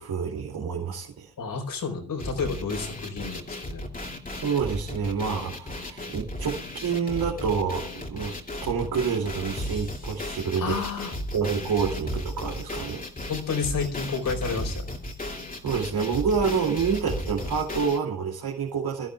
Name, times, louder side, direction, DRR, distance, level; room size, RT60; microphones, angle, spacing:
voice 1, 0.0-1.3 4.3-8.3 8.6-10.8 11.3-13.0 15.6-19.1, right 6 dB, 75° right, -1 dB, 2.9 m, -28 dB
voice 2, 1.4-3.8 10.6-11.1 13.3-15.0, left 5 dB, 65° left, 4 dB, 4.4 m, -30 dB
sound 1, 2.2-18.0, left 1 dB, 25° left, 2.7 m, -35 dB
24.0 x 13.5 x 2.4 m, 0.43 s
wide cardioid pair, 130°, 36 cm